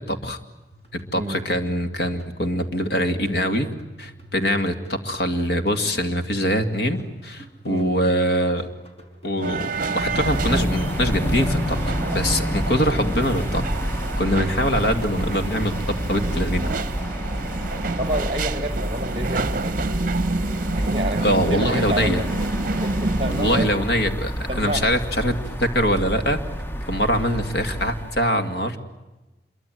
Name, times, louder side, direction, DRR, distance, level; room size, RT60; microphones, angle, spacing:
voice 1, 0.1-0.4 1.1-3.7 4.0-8.7 9.2-13.6 13.9-15.7 16.1-16.7 21.2-22.2 23.3-25.3 25.6-26.4 26.8-28.8, equal, 70° left, 7 dB, 2.4 m, -23 dB
sound 1, 0.7-20.4, right 1 dB, 35° left, 4.7 m, -48 dB
voice 2, 1.1-1.5 7.6-7.9 17.8-19.8 20.7-22.2 22.8-23.7 24.5-24.9 27.1-27.3, right 1 dB, 30° right, 9 dB, 1.3 m, -29 dB
sound 2, 9.4-23.7, right 3 dB, 50° right, 0.8 m, -29 dB
sound 3, 10.0-28.3, equal, 10° left, 0.9 m, -28 dB
27.0 x 23.5 x 9.2 m, 1.1 s
head